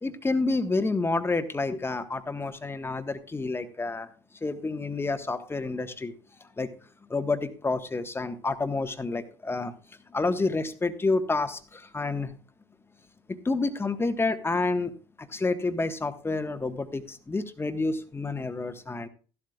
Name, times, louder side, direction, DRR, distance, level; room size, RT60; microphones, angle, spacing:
voice 1, 0.0-4.1 4.4-6.1 6.4-6.7 7.1-9.7 10.1-12.3 13.3-19.1, left 3 dB, 20° left, 8 dB, 1.6 m, -29 dB
15.0 x 12.0 x 2.5 m, 0.38 s
figure-of-eight pair, 55°, 13 cm